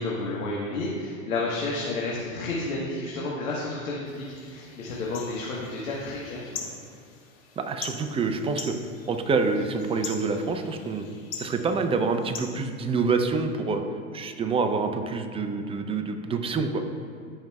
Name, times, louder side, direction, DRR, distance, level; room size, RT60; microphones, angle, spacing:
voice 1, 0.0-6.7, left 2 dB, 80° left, -5 dB, 1.5 m, -31 dB
sound 1, 4.0-13.4, left 6 dB, 40° left, 1.3 m, -43 dB
voice 2, 7.6-8.8 9.1-11.0 11.4-13.8 14.1-16.9, right 4 dB, 15° right, 6 dB, 0.5 m, -27 dB
14.5 x 5.4 x 2.3 m, 2.3 s
hypercardioid pair, 100°, 42 cm